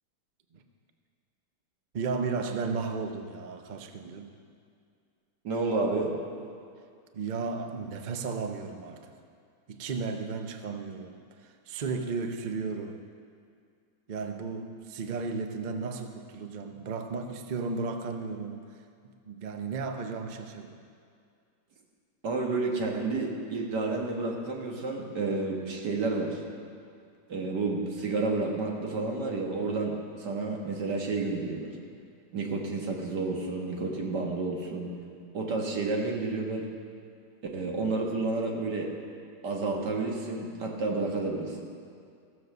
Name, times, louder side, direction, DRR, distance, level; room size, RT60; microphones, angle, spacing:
voice 1, 1.9-4.3 7.1-9.1 9.7-13.0 14.1-18.7 19.2-20.8, right 4 dB, 45° right, 5 dB, 0.6 m, -34 dB
voice 2, 5.4-6.1 22.2-26.4 27.3-31.8 32.3-34.9 35.3-36.6 37.5-38.9 39.4-41.6, right 3 dB, 85° right, 0 dB, 2.1 m, -30 dB
16.0 x 7.0 x 6.7 m, 2.3 s
omnidirectional pair, 1.8 m